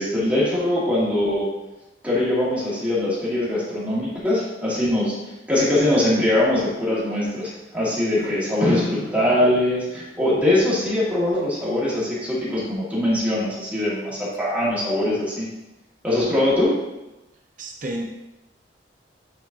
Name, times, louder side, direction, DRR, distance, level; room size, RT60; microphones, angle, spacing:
voice 1, 0.0-1.5 2.0-5.1 5.5-15.5 16.0-16.8, left 1 dB, 10° right, -8 dB, 2.2 m, -22 dB
voice 2, 17.6-18.0, right 1 dB, 45° right, 1 dB, 0.7 m, -31 dB
9.0 x 4.5 x 2.9 m, 0.98 s
head